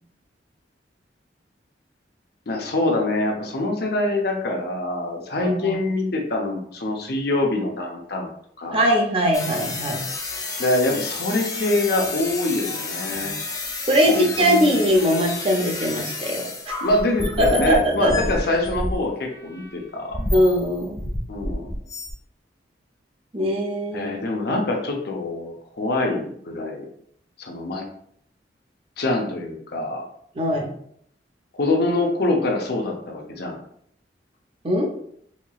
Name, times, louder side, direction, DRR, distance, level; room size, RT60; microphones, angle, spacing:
voice 1, 2.5-8.3 8.6-8.8 10.6-13.3 14.1-14.8 16.8-20.2 21.3-21.7 23.9-26.8 27.4-27.8 29.0-30.0 31.6-33.6, left 2 dB, 60° left, 1 dB, 0.7 m, -24 dB
voice 2, 5.4-5.8 8.7-10.0 13.1-13.3 13.9-16.8 17.4-18.1 20.3-21.0 23.3-24.1 30.3-30.7 34.6-34.9, equal, 30° right, 1 dB, 0.6 m, -21 dB
sound 1, 9.3-19.0 19.3-19.8 20.1-22.1, left 2 dB, 20° left, 0.5 m, -30 dB
4.3 x 2.9 x 2.3 m, 0.67 s
head